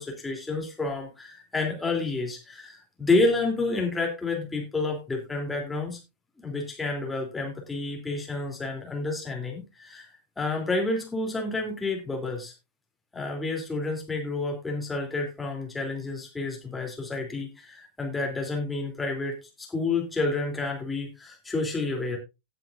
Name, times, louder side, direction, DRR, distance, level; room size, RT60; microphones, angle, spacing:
voice 1, 0.0-6.0 6.4-10.1 10.4-12.5 13.1-22.2, left 3 dB, 10° left, 0 dB, 3.2 m, -29 dB
18.5 x 7.7 x 2.6 m, 0.25 s
figure-of-eight pair, 90°, 0 cm